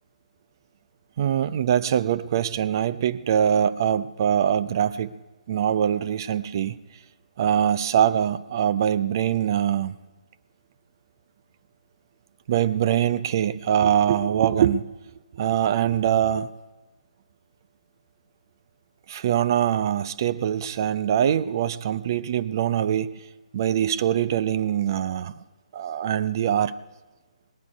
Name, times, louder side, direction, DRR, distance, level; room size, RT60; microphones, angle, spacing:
voice 1, 1.2-5.1 5.5-6.8 7.4-10.0 12.5-14.8 15.3-16.5 19.1-23.2 23.5-25.3 25.7-26.8, right 9 dB, 30° right, 14 dB, 0.4 m, -23 dB
18.0 x 11.5 x 4.7 m, 1.2 s
figure-of-eight pair, 140°, 4 cm